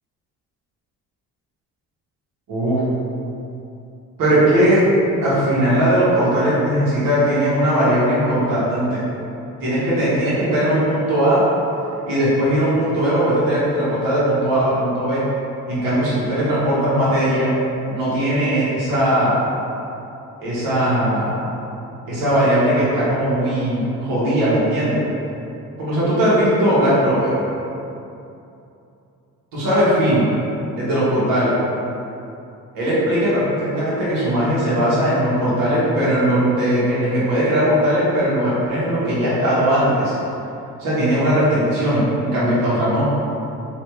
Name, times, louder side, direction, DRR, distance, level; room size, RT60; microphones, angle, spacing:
voice 1, 2.5-2.8 4.2-4.8 5.2-9.0 9.6-11.4 12.1-15.2 15.7-17.5 17.9-19.4 20.4-21.5 22.1-25.0 25.8-27.4 29.5-30.3 30.7-31.6 32.7-40.1 40.8-43.1, equal, 90° right, -10 dB, 1.1 m, -19 dB
3.3 x 2.5 x 3.0 m, 2.7 s
cardioid pair, 75°, 32 cm